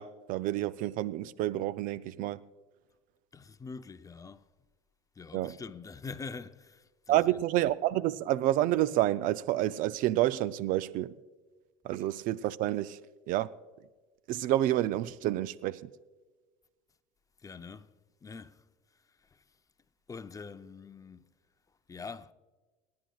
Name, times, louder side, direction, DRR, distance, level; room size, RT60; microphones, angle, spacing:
voice 1, 0.0-2.4 5.3-5.5 7.1-11.1 11.8-13.0 13.3-13.5 14.3-15.9, right 14 dB, 55° right, 0.5 m, -29 dB
voice 2, 3.3-4.5 5.1-7.4 17.4-19.6 20.1-21.3 21.7-22.3, left 4 dB, 20° left, 0.6 m, -45 dB
27.0 x 10.5 x 2.3 m
hypercardioid pair, 85°, 17 cm